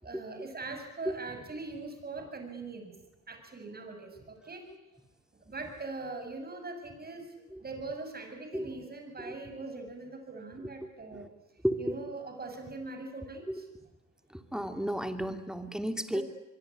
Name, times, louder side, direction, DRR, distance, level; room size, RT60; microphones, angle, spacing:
voice 1, 0.0-2.9 3.3-4.7 5.3-7.3 7.6-11.3 11.8-13.7 16.1-16.2, right 3 dB, 30° right, 5 dB, 7.3 m, -41 dB
voice 2, 11.6-12.0 14.5-16.2, equal, ahead, 7 dB, 2.7 m, -32 dB
24.5 x 23.0 x 9.9 m, 1.0 s
cardioid pair, 90°, 30 cm